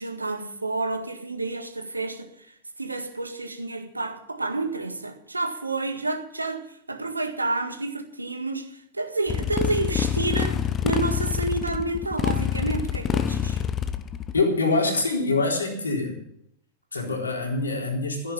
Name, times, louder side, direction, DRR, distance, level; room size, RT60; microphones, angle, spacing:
voice 1, 0.0-13.6, right 2 dB, 80° right, 1.7 m, -30 dB
Motorcycle, 9.3-14.4, left 8 dB, 25° left, 0.8 m, -26 dB
voice 2, 14.3-16.2 16.9-18.3, left 3 dB, 75° left, 4.0 m, -25 dB
14.5 x 10.5 x 7.1 m
figure-of-eight pair, 90°, 0 cm